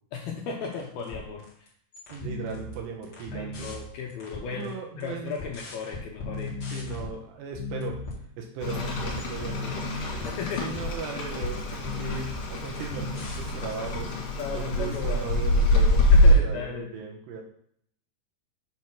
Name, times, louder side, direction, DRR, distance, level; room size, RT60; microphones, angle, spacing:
voice 1, 0.1-1.7 3.3-6.5 10.2-10.6 14.4-15.3 16.1-16.9, left 6 dB, 75° left, -1 dB, 2.3 m, -36 dB
sound 1, 0.7-1.7 1.9-4.7 5.0-7.1 7.5-8.2 8.6-14.3, left 2 dB, 40° left, 1.6 m, -37 dB
voice 2, 2.1-3.7 4.5-5.4 6.7-8.0 8.4-9.8 10.6-16.1 16.4-17.4, right 5 dB, 75° right, 1 dB, 3.0 m, -37 dB
Rain, 8.6-16.3, left 1 dB, 55° left, 3.3 m, -24 dB
7.7 x 4.1 x 5.8 m, 0.67 s
omnidirectional pair, 5.2 m